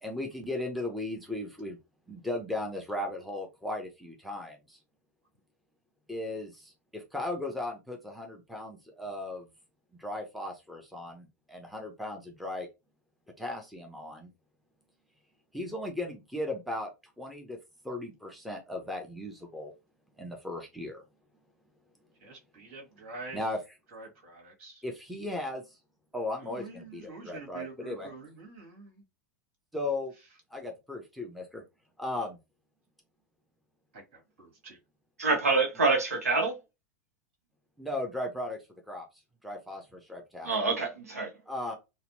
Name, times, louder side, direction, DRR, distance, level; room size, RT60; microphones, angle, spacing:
voice 1, 0.0-1.8 2.1-4.8 6.1-9.5 10.0-12.7 13.4-14.3 15.5-16.9 17.2-17.6 17.8-19.7 20.2-21.0 23.3-23.8 24.8-25.8 26.1-28.1 29.7-30.1 30.5-31.6 32.0-32.4 37.8-38.6 38.9-39.1 39.4-40.5 41.5-41.7, left 2 dB, ahead, 0.7 m, -36 dB
voice 2, 22.2-23.4 23.9-24.8 26.4-29.0 33.9-34.8, right 3 dB, 55° right, 1.7 m, -46 dB
voice 3, 35.2-36.5 40.4-41.3, right 3 dB, 75° right, 0.8 m, -26 dB
4.1 x 2.2 x 2.6 m
figure-of-eight pair, 85°, 8 cm